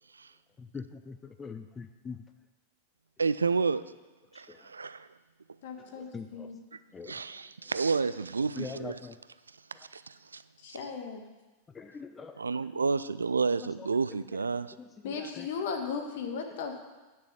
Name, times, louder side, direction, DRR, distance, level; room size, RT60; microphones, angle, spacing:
voice 1, 0.6-2.2 4.3-4.7 5.8-6.5 6.9-7.2 7.7-8.0 8.6-9.2 9.7-9.9 11.7-12.4 13.6-13.9 14.3-14.4 14.8-15.5, left 5 dB, 15° left, 8 dB, 0.5 m, -44 dB
voice 2, 3.2-3.8 4.3-5.1 7.1-8.9 9.9-10.4 12.4-14.7, right 4 dB, 75° right, 15 dB, 0.3 m, -30 dB
voice 3, 5.6-6.6 10.6-11.2 15.0-16.8, left 5 dB, 55° left, 4 dB, 1.5 m, -36 dB
9.9 x 6.2 x 6.7 m, 1.2 s
figure-of-eight pair, 90°, 0 cm